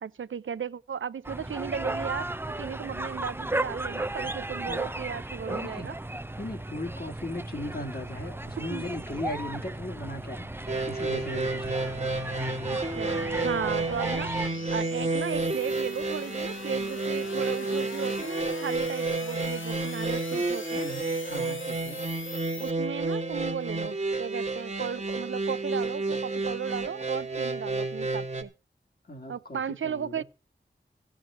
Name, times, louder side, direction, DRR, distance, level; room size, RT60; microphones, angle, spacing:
voice 1, 0.0-6.0 8.7-8.8 12.7-14.3 14.7-20.9 22.6-28.5 29.3-30.2, right 7 dB, 90° right, 0.5 m, -35 dB
sound 1, 1.2-14.5, right 2 dB, 10° right, 0.5 m, -35 dB
voice 2, 5.5-5.9 6.4-11.9 20.7-22.0 29.1-30.2, left 1 dB, 50° left, 2.5 m, -38 dB
sound 2, 9.0-22.7, left 4 dB, 90° left, 0.9 m, -45 dB
sound 3, 10.7-28.4, right 3 dB, 35° right, 1.5 m, -30 dB
14.5 x 6.3 x 7.0 m
wide cardioid pair, 60°, 20 cm